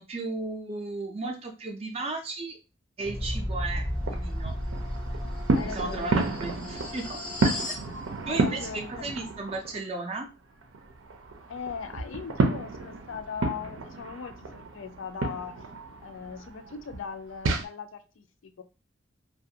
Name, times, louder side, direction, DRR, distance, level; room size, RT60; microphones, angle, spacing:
voice 1, 0.0-2.6 3.0-4.5 5.6-7.2 8.3-10.3, right 3 dB, 30° right, 3 dB, 0.4 m, -35 dB
sound 1, 3.0-7.9, left 1 dB, 25° left, 0.6 m, -34 dB
sound 2, 3.0-9.8 10.2-17.7, right 3 dB, 90° right, 0.5 m, -32 dB
voice 2, 5.5-6.2 8.3-9.2 11.5-15.6 16.0-18.6, left 6 dB, 80° left, 9 dB, 0.4 m, -39 dB
2.4 x 2.3 x 2.7 m, 0.30 s
head